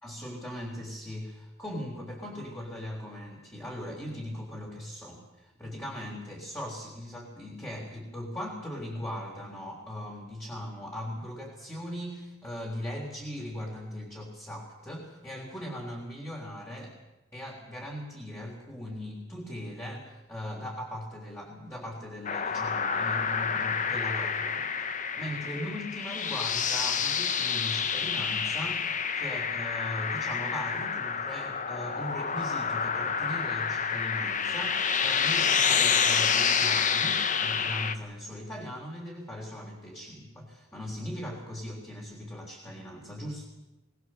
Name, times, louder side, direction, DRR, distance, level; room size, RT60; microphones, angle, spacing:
voice 1, 0.0-16.9 17.3-43.5, equal, 15° left, -2 dB, 3.7 m, -39 dB
sound 1, 22.2-37.9, left 6 dB, 40° left, 1.1 m, -28 dB
22.0 x 20.0 x 7.7 m, 1.0 s
head